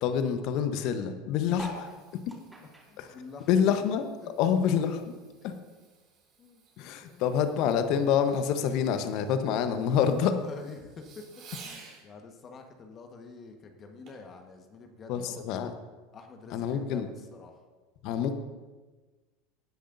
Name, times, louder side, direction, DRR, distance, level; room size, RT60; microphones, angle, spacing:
voice 1, 0.0-2.2 3.0-3.1 3.5-4.1 4.4-5.0 5.4-5.6 6.8-10.4 15.1-15.7 16.5-17.1 18.0-18.4, left 8 dB, 55° left, 9 dB, 1.0 m, -27 dB
Fireworks, 1.1-12.1 14.1-14.3 14.9-15.0, right 5 dB, 50° right, 3.6 m, -55 dB
sound 1, 1.5-4.3 4.6-6.1 6.6-6.7 6.9-7.0 7.2-7.6 8.4-8.5, right 1 dB, 10° right, 4.3 m, -47 dB
voice 2, 2.9-3.5 4.2-4.3 6.4-6.6 7.0-7.2 10.4-15.6 16.1-17.6, left 4 dB, 35° left, 4 dB, 1.4 m, -47 dB
19.0 x 10.0 x 2.7 m, 1.3 s
hypercardioid pair, 80°, 0 cm